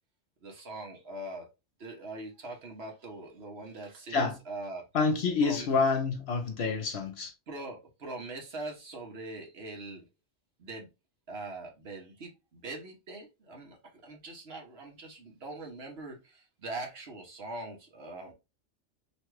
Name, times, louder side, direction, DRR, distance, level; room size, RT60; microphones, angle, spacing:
voice 1, 0.4-1.5 1.8-4.8 5.4-5.7 7.5-10.0 10.6-10.9 11.3-18.3, right 2 dB, 55° right, 1.1 m, -42 dB
voice 2, 4.9-7.3, left 4 dB, 65° left, 0.8 m, -28 dB
3.1 x 2.3 x 3.1 m
omnidirectional pair, 1.3 m